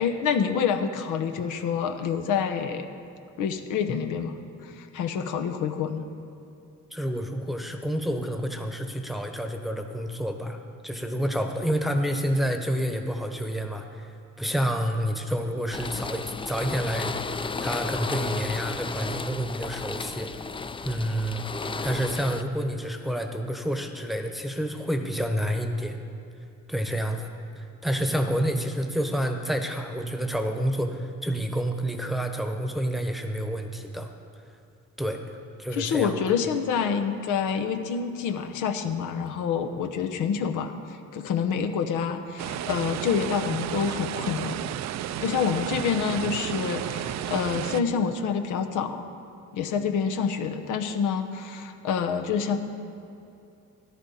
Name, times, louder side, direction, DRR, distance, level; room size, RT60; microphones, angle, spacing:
voice 1, 0.0-2.9 3.4-6.0 35.7-44.6 45.2-49.0 49.5-52.6, left 6 dB, 85° left, 7 dB, 0.9 m, -27 dB
voice 2, 6.9-14.1 14.4-17.3 17.6-20.3 20.8-21.5 21.8-26.0 26.7-27.3 27.6-34.1 35.0-36.3, equal, ahead, 5 dB, 1.0 m, -29 dB
sound 1, 15.7-22.4, left 4 dB, 15° left, 0.4 m, -33 dB
sound 2, 42.4-47.8, right 12 dB, 65° right, 0.4 m, -32 dB
13.5 x 11.0 x 4.2 m, 2.7 s
cardioid pair, 90°, 30 cm